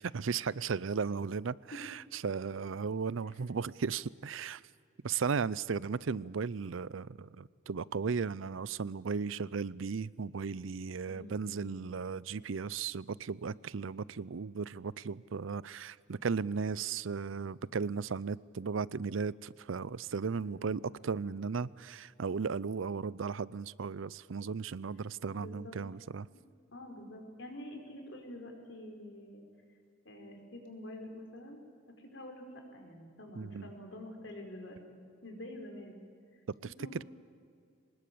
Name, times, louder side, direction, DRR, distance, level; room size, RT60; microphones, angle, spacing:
voice 1, 0.0-4.6 5.0-26.3 33.4-33.7, right 5 dB, 75° right, 21 dB, 0.5 m, -36 dB
voice 2, 11.0-11.8 20.4-21.2 25.3-25.8 26.7-29.4 30.0-31.6 32.0-36.0 36.3-36.4 36.8-37.0, left 1 dB, 65° left, 3 dB, 4.9 m, -47 dB
24.5 x 20.5 x 8.7 m, 2.3 s
head